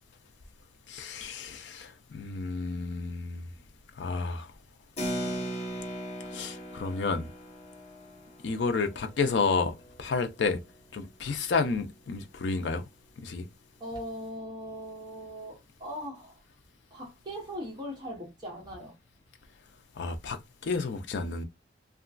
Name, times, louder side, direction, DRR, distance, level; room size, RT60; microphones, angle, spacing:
voice 1, 0.9-3.5 4.0-4.5 6.3-7.3 8.4-10.6 10.9-12.8 13.2-13.5 20.0-21.4, left 4 dB, 65° left, 0.4 m, -31 dB
Keyboard (musical), 5.0-11.0, equal, 35° left, 0.9 m, -39 dB
voice 2, 13.8-16.4 16.9-19.0, equal, 20° right, 0.8 m, -40 dB
2.9 x 2.3 x 2.4 m
head